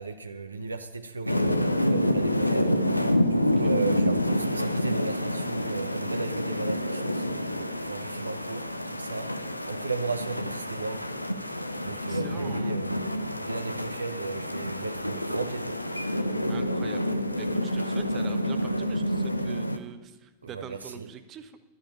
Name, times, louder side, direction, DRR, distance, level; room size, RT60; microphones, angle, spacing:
voice 1, 0.0-1.5 1.9-2.7 3.2-9.3 9.7-11.1 11.5-15.8 20.4-21.1, right 4 dB, 80° right, 8 dB, 0.8 m, -35 dB
sound 1, 1.3-19.8, left 1 dB, 85° left, 0.7 m, -28 dB
voice 2, 3.4-3.7 12.1-12.8 16.5-21.6, right 8 dB, 30° right, 10 dB, 1.0 m, -44 dB
12.0 x 9.8 x 8.8 m, 1.2 s
figure-of-eight pair, 90°, 0 cm